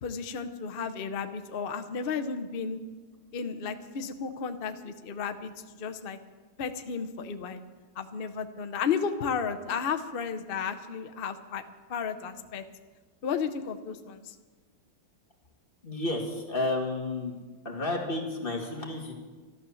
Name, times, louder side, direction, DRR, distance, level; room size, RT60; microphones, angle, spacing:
voice 1, 0.0-2.8 3.3-5.5 5.8-6.2 6.6-7.6 8.0-11.6 11.9-12.6 13.2-14.3, left 6 dB, 60° left, 8 dB, 0.5 m, -33 dB
voice 2, 15.8-17.4 17.6-19.1, left 2 dB, 25° left, 1 dB, 2.1 m, -31 dB
12.0 x 12.0 x 7.1 m, 1.3 s
omnidirectional pair, 2.2 m